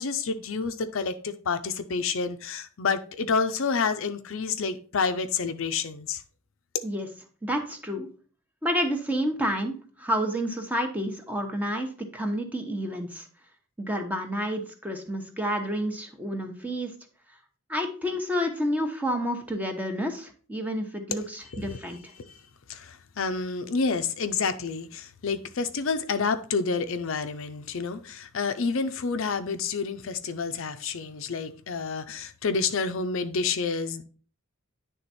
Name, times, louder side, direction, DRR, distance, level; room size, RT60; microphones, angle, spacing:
voice 1, 0.0-6.2 21.5-21.8 22.2-22.4 22.7-34.1, left 5 dB, 65° left, 0.5 m, -29 dB
voice 2, 7.4-8.1 8.6-13.2 13.8-16.9 17.7-22.0, equal, 5° right, 0.9 m, -29 dB
9.6 x 3.5 x 4.2 m
head